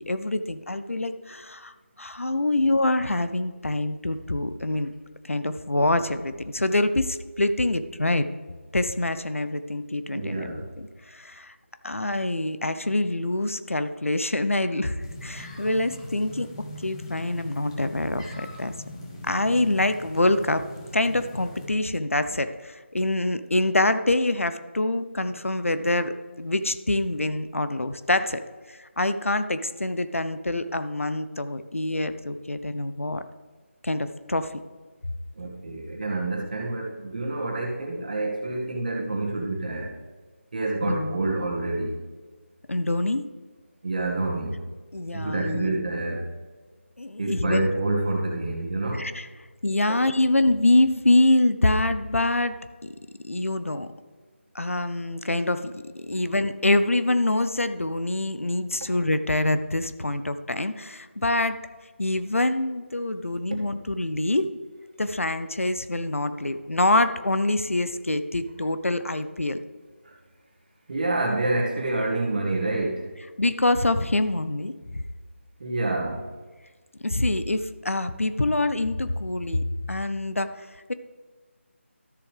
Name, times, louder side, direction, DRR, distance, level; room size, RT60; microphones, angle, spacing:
voice 1, 0.0-1.7 2.0-4.9 5.2-8.3 8.7-11.5 11.8-16.5 16.8-18.7 19.2-20.6 20.9-28.4 28.7-33.2 33.8-34.5 40.9-41.2 42.7-43.3 44.9-45.8 47.0-47.7 48.9-49.3 49.6-52.9 53.2-53.9 54.5-61.6 62.0-64.5 65.0-69.6 73.4-75.0 77.0-80.9, left 2 dB, 85° left, 11 dB, 0.7 m, -25 dB
voice 2, 10.1-10.7 35.4-39.9 40.5-41.9 43.8-44.6 45.1-46.2 47.2-49.1 49.9-50.0 70.1-70.2 70.9-73.1 75.6-76.3, right 2 dB, 40° right, -1 dB, 1.7 m, -28 dB
sound 1, 15.0-21.7, left 1 dB, 20° left, 2.0 m, -41 dB
13.0 x 7.1 x 3.4 m, 1.3 s
figure-of-eight pair, 165°, 7 cm